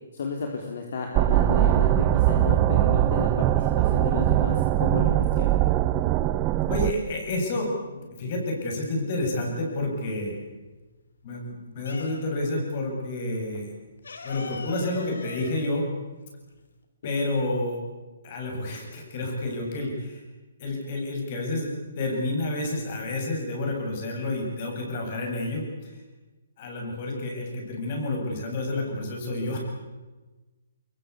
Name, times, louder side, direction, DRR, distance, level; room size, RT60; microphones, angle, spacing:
voice 1, 0.1-5.6, left 5 dB, 55° left, 2 dB, 3.7 m, -32 dB
sound 1, 1.1-6.9, right 13 dB, 20° right, 0.9 m, -21 dB
sound 2, 6.7-7.6 7.9-9.8 10.2-12.6 12.9-13.0 13.3-16.8, left 4 dB, 85° left, 3.7 m, -43 dB
voice 2, 6.7-10.4 11.2-13.7 14.2-15.9 17.0-17.8 18.2-20.2 20.6-26.0 26.6-29.6, left 2 dB, 40° left, 1 dB, 7.9 m, -29 dB
24.0 x 22.5 x 8.4 m, 1.2 s
hypercardioid pair, 160°, 0 cm